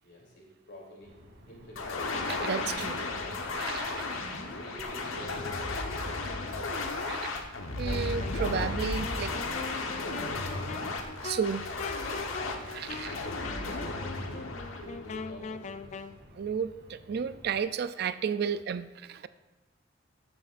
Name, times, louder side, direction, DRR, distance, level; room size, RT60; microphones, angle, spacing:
voice 1, 0.0-1.2 1.5-2.2 4.1-5.9 6.3-6.9 12.9-14.3 14.7-16.1, equal, 60° left, -3 dB, 3.2 m, -48 dB
sound 1, 1.0-17.6, equal, 85° right, 2.4 m, -54 dB
sound 2, 1.8-15.6, left 3 dB, 90° left, 1.1 m, -34 dB
voice 2, 2.3-3.1 3.5-4.2 7.1-7.3 7.7-9.3 10.8-11.0 11.2-11.7 12.7-13.2 16.4-19.3, right 7 dB, 55° right, 13 dB, 0.3 m, -33 dB
Wind instrument woodwind instrument, 7.8-16.2, left 4 dB, 35° left, 0.3 m, -42 dB
14.0 x 9.3 x 2.5 m, 1.1 s
head